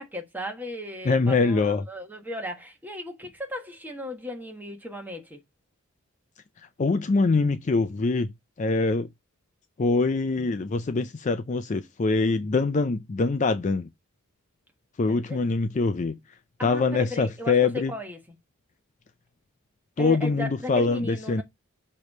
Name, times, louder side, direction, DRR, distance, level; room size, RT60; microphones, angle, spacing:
voice 1, 0.0-5.4 15.3-15.4 16.6-18.2 20.0-21.4, left 1 dB, 10° right, 1.3 m, -36 dB
voice 2, 1.0-1.9 6.8-8.3 8.6-9.1 9.8-13.9 15.0-16.2 16.6-17.9 20.0-21.4, left 3 dB, 35° left, 0.4 m, -24 dB
6.8 x 3.1 x 5.3 m
head